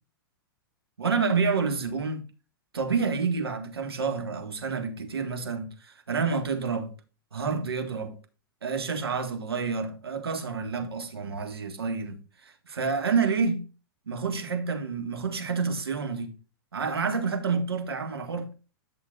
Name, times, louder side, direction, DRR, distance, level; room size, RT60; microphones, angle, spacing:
voice 1, 1.0-2.2 2.7-6.9 7.3-8.1 8.6-12.2 12.6-13.6 14.1-16.3 16.7-18.5, right 5 dB, 85° right, 1.7 m, -28 dB
11.0 x 6.3 x 2.5 m
hypercardioid pair, 110°, 12 cm